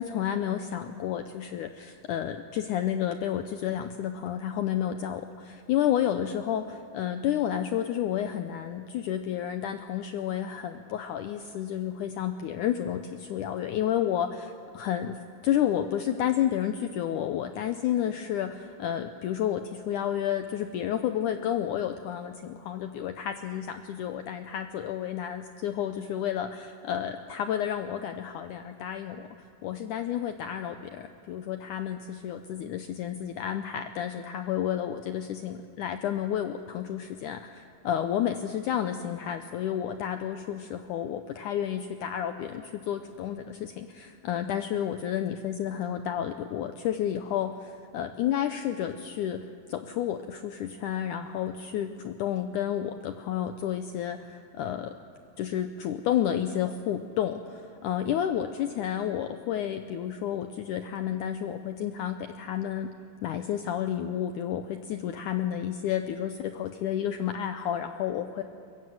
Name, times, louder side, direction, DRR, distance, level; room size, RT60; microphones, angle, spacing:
voice 1, 0.0-54.9 55.4-62.9 63.2-68.4, left 10 dB, 80° left, 8 dB, 1.8 m, -31 dB
22.5 x 22.5 x 7.8 m, 2.3 s
omnidirectional pair, 4.4 m